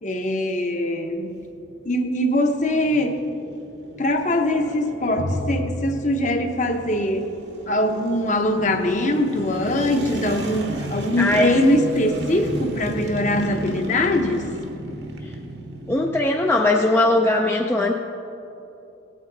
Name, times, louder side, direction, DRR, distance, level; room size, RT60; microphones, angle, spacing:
voice 1, 0.0-1.4 1.8-3.2 4.0-7.3 7.7-14.5, left 1 dB, 40° left, 5 dB, 0.8 m, -22 dB
sound 1, 1.0-16.3, right 1 dB, 60° right, 1.1 m, -34 dB
Drum, 5.2-7.6, left 1 dB, 80° left, 1.1 m, -31 dB
voice 2, 11.2-11.5 15.2-15.3 15.9-17.9, left 2 dB, 10° left, 1 dB, 0.4 m, -19 dB
17.5 x 8.7 x 4.0 m, 2.9 s
head